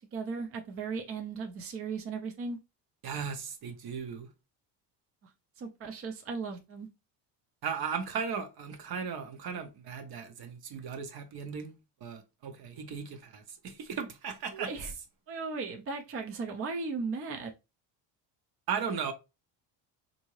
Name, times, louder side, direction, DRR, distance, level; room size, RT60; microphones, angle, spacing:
voice 1, 0.1-2.6 5.2-6.9 14.5-14.9 15.3-17.5, right 4 dB, 30° right, 0.5 m, -37 dB
voice 2, 3.0-4.3 7.6-11.7 12.0-14.7 18.7-19.1, right 6 dB, 50° right, 0.9 m, -36 dB
3.6 x 2.7 x 3.0 m
cardioid pair, 115°, 46 cm